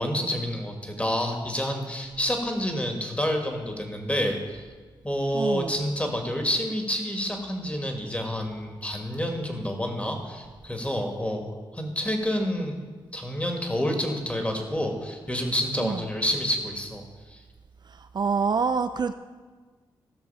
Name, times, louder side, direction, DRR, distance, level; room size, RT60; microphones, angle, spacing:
voice 1, 0.0-4.6 5.0-17.0 17.3-17.4, equal, 15° left, 3 dB, 2.0 m, -28 dB
voice 2, 5.3-5.7 15.8-16.0 17.9-19.1, right 5 dB, 50° right, 9 dB, 0.4 m, -27 dB
15.0 x 6.2 x 5.6 m, 1.4 s
cardioid pair, 70°, 9 cm